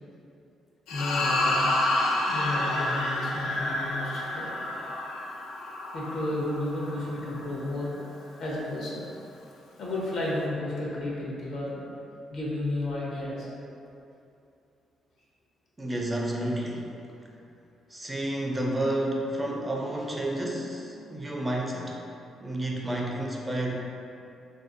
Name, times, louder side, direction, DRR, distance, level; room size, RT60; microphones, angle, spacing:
sound 1, 0.9-7.4, left 1 dB, 85° left, 0.4 m, -29 dB
voice 1, 0.9-1.8 2.3-4.5 5.9-7.9 8.4-9.0 9.8-11.8 12.3-13.5, left 1 dB, 65° left, -5 dB, 0.8 m, -32 dB
voice 2, 15.8-16.9 17.9-22.0 22.4-23.7, right 1 dB, 15° right, -1 dB, 0.4 m, -30 dB
3.4 x 2.6 x 2.5 m, 2.7 s
cardioid pair, 90°, 0 cm